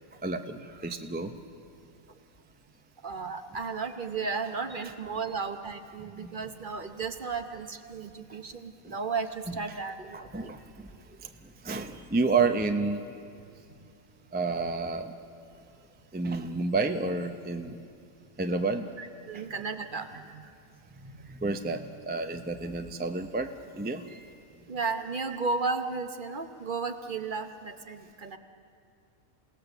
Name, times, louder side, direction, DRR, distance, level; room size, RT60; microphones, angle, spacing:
voice 1, 0.2-1.3 4.8-4.9 6.2-6.3 8.3-8.4 10.1-10.9 11.6-13.0 14.3-15.1 16.1-17.7 18.4-18.9 19.3-19.4 21.0-24.3, right 3 dB, 10° right, 6 dB, 0.4 m, -30 dB
voice 2, 3.0-10.5 13.8-13.9 19.0-20.5 21.0-21.3 24.7-28.4, right 4 dB, 40° right, 8 dB, 1.0 m, -34 dB
28.0 x 18.0 x 7.0 m, 2.5 s
omnidirectional pair, 1.5 m